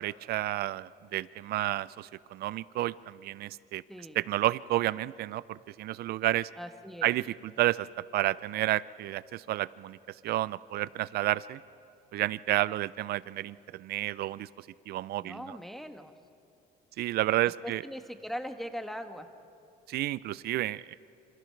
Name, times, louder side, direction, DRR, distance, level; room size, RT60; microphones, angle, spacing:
voice 1, 0.0-3.8 4.2-6.5 7.0-11.6 12.1-15.6 17.0-17.8 19.9-20.9, right 15 dB, 70° right, 19 dB, 0.5 m, -31 dB
voice 2, 6.6-7.1 15.2-16.1 17.6-19.3, equal, ahead, 7 dB, 1.3 m, -40 dB
27.0 x 27.0 x 4.6 m, 2.7 s
cardioid pair, 110°, 17 cm